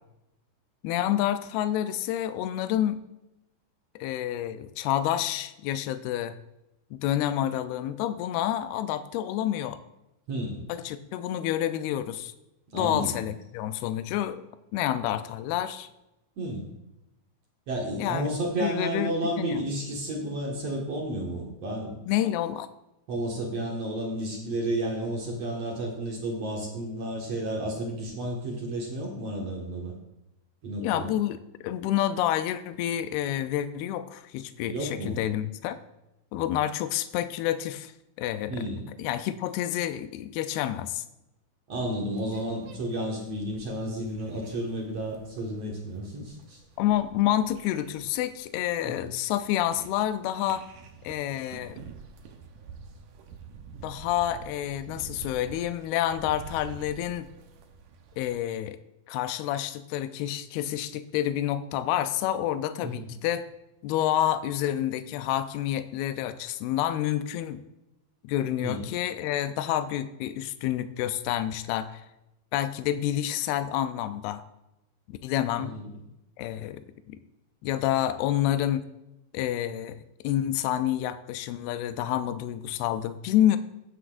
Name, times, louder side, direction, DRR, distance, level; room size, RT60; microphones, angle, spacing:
voice 1, 0.8-3.0 4.0-6.4 6.9-9.8 10.7-12.3 12.7-14.4 14.7-15.9 18.0-18.3 18.6-19.1 19.4-19.6 22.1-22.7 30.8-35.8 36.3-37.9 38.2-38.7 39.0-41.0 46.8-50.7 51.0-51.8 53.8-57.3 58.2-58.8 59.1-63.5 63.8-67.6 68.2-72.1 72.5-74.4 75.1-75.7 76.4-77.2 77.6-78.9 79.3-83.6, left 12 dB, 85° left, 11 dB, 2.6 m, -28 dB
voice 2, 10.3-10.6 12.7-13.2 16.4-16.7 17.7-21.9 23.1-29.9 30.6-31.2 34.7-35.2 38.5-38.9 41.7-46.6 48.8-49.0 62.8-63.1 68.6-68.9 75.6-75.9, right 1 dB, 50° right, -1 dB, 2.3 m, -32 dB
sound 1, 41.9-58.4, right 5 dB, 70° right, 2.2 m, -48 dB
15.0 x 10.0 x 2.6 m, 0.91 s
omnidirectional pair, 4.5 m